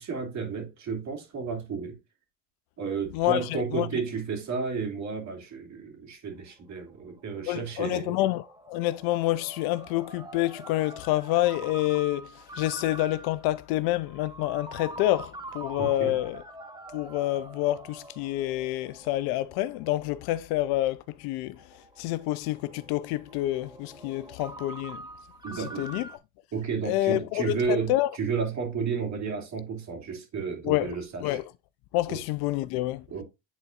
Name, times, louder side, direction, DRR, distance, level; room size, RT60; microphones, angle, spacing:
voice 1, 0.0-2.0 2.8-8.2 15.8-16.2 25.4-25.9 26.5-31.4 32.1-32.2 33.1-33.2, right 5 dB, 40° right, 2.6 m, -32 dB
voice 2, 3.1-4.0 7.5-12.3 12.6-16.4 16.9-21.6 22.0-25.0 25.8-26.1 26.9-28.1 30.6-30.9 31.2-31.4 31.9-33.0, left 16 dB, 60° left, 0.5 m, -28 dB
Ringtone, 6.4-26.2, right 2 dB, 10° right, 1.1 m, -45 dB
10.0 x 4.0 x 2.4 m
supercardioid pair, 105°, 44 cm